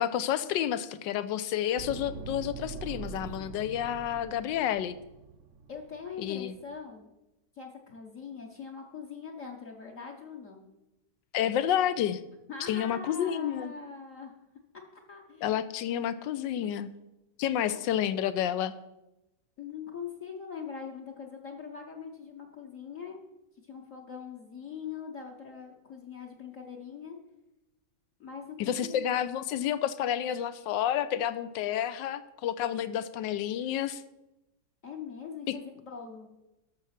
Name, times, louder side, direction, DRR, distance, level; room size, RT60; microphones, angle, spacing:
voice 1, 0.0-5.0 6.2-6.5 11.3-12.2 12.6-13.7 15.4-16.9 17.4-18.7 28.6-34.0 35.5-35.6, left 10 dB, 85° left, 14 dB, 1.3 m, -30 dB
sound 1, 1.8-6.8, right 5 dB, 60° right, 0.9 m, -44 dB
voice 2, 5.7-7.1 7.5-10.7 12.5-14.3 14.9-15.5 17.7-17.8 19.6-23.2 23.6-27.2 28.2-29.1 34.8-36.3, left 6 dB, 50° left, 1 dB, 1.2 m, -42 dB
13.0 x 6.2 x 5.8 m, 0.95 s
omnidirectional pair, 1.9 m